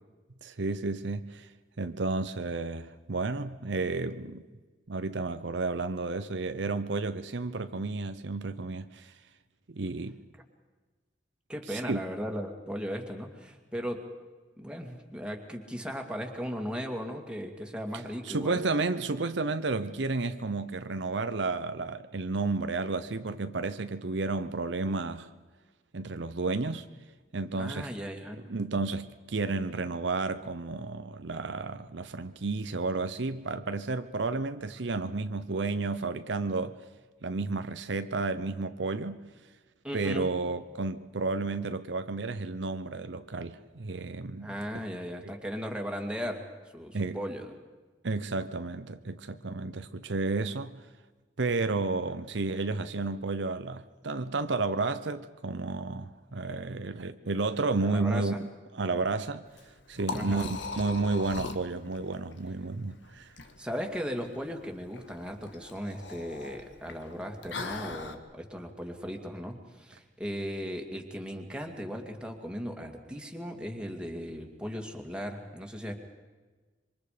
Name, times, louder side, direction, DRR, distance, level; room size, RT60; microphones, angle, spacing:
voice 1, 0.4-1.5 1.8-4.4 4.9-9.1 9.7-10.2 11.7-12.0 18.2-25.3 25.9-26.9 27.3-27.9 28.5-36.8 37.2-39.2 39.9-44.5 45.2-45.3 46.9-47.2 48.0-50.8 51.4-58.4 58.7-59.4 59.9-60.5 60.7-63.3, right 3 dB, 70° right, 0.8 m, -32 dB
voice 2, 11.5-14.1 14.6-18.6 27.6-28.4 39.8-40.3 44.4-47.5 57.8-58.4 60.1-60.5 63.6-75.9, equal, 5° right, 2.4 m, -37 dB
Liquid, 59.5-68.1, left 3 dB, 75° left, 1.7 m, -41 dB
26.5 x 24.5 x 5.1 m
head